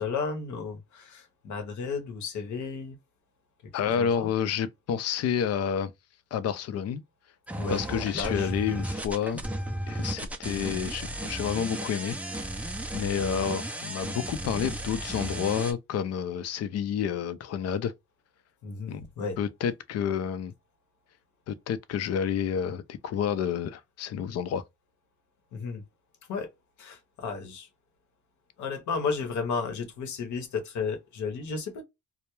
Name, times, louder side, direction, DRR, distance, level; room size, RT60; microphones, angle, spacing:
voice 1, 0.0-3.0 3.8-4.3 7.6-8.5 13.0-13.1 18.6-19.4 25.5-25.8 26.3-26.5 26.8-27.7 28.6-31.8, left 5 dB, 70° left, 0.8 m, -33 dB
voice 2, 3.7-5.9 6.3-7.0 7.7-9.4 9.9-12.2 12.9-17.9 18.9-19.0 19.4-20.5 21.5-24.6, left 8 dB, 55° left, 0.4 m, -29 dB
sound 1, 7.5-15.7, right 1 dB, 5° right, 0.4 m, -34 dB
2.2 x 2.0 x 2.9 m
cardioid pair, 90°, 30 cm